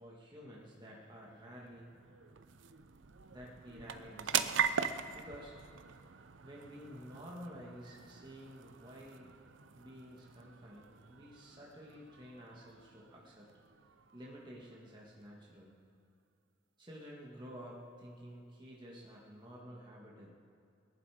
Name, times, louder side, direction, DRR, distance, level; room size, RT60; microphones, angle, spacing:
voice 1, 0.0-1.9 3.3-4.7 5.1-5.5 6.4-9.3 9.7-13.5 14.1-15.7 16.8-20.3, equal, 25° right, -4 dB, 1.8 m, -51 dB
sound 1, 0.9-15.7, right 7 dB, 75° right, 0.6 m, -42 dB
22.0 x 11.0 x 5.0 m, 2.4 s
head